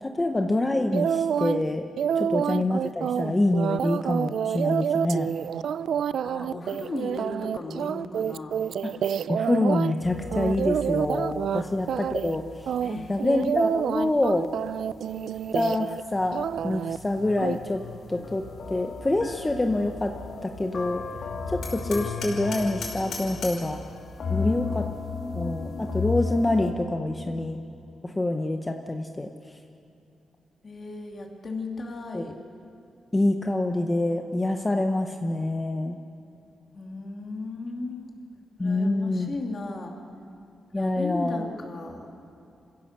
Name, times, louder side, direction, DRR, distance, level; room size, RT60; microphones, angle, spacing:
voice 1, 0.0-1.8 2.2-5.3 8.8-8.9 9.3-12.4 13.1-14.5 15.5-17.8 18.1-18.4 18.7-20.1 20.4-21.0 21.5-23.8 24.3-24.9 25.4-27.6 28.0-29.3 32.1-32.2 33.1-36.0 38.6-39.3 40.7-41.5, left 2 dB, 15° left, 5 dB, 0.8 m, -26 dB
sound 1, 0.9-1.6 2.0-9.9 10.3-11.6 11.9-12.4 12.7-16.0 16.3-17.0 17.4-17.6, right 8 dB, 70° right, 0.4 m, -28 dB
voice 2, 2.2-2.6 6.2-8.6 11.5-11.7 12.8-13.2 24.3-26.0 30.6-32.4 36.7-38.1 38.6-40.0 40.7-42.2, left 2 dB, 35° left, 2 dB, 2.5 m, -37 dB
sound 2, 10.0-14.9 15.2-26.7, left 4 dB, 55° left, 2.0 m, -36 dB
Hammer, 21.6-23.7, left 3 dB, 70° left, 5.3 m, -37 dB
27.5 x 16.5 x 6.7 m, 2.7 s
wide cardioid pair, 160°, 0 cm